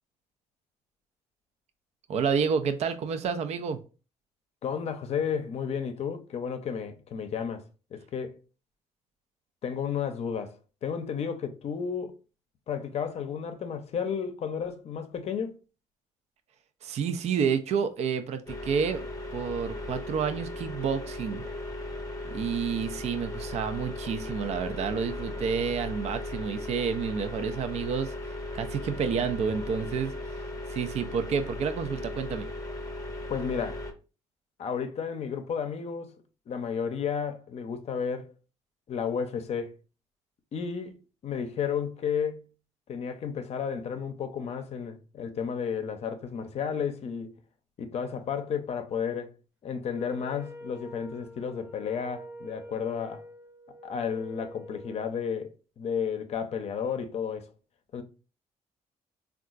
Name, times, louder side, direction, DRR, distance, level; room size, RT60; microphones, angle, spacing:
voice 1, 2.1-3.8 16.8-19.0 19.3-21.4 22.2-30.4 30.7-32.5, right 6 dB, 60° right, 0.4 m, -29 dB
voice 2, 4.6-7.6 7.9-8.4 9.6-10.5 10.8-12.2 12.7-15.6 33.3-33.8 34.6-36.1 36.5-38.3 38.9-39.7 40.5-42.4 42.9-47.3 47.8-49.3 49.6-53.3 53.8-57.5 57.9-58.0, left 7 dB, 55° left, 0.6 m, -32 dB
sound 1, 18.5-33.9, left 2 dB, 25° left, 0.8 m, -37 dB
Wind instrument woodwind instrument, 49.9-55.2, equal, 15° right, 0.7 m, -45 dB
3.6 x 2.3 x 2.4 m
cardioid pair, 75°, 13 cm